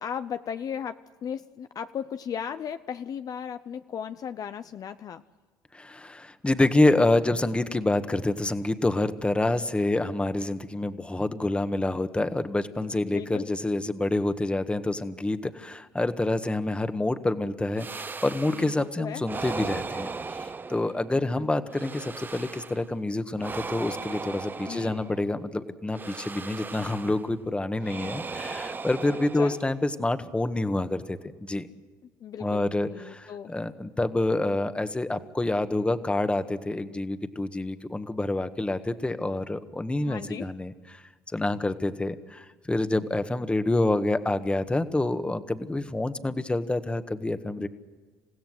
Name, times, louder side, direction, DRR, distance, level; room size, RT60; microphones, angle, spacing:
voice 1, 0.0-5.2 12.8-13.5 18.5-19.2 21.1-21.5 24.7-25.0 29.1-29.6 32.2-33.5 40.0-40.5 47.6-47.7, left 8 dB, 50° left, 10 dB, 0.7 m, -36 dB
voice 2, 5.7-31.7 32.4-41.0 41.3-47.7, left 2 dB, 15° left, 10 dB, 1.6 m, -27 dB
sound 1, 17.8-18.8 19.2-21.2 21.7-22.9 23.4-25.4 25.9-27.3 27.8-29.9, right 4 dB, 25° right, 0.9 m, -37 dB
28.5 x 16.0 x 8.0 m, 1.4 s
hypercardioid pair, 70°, 8 cm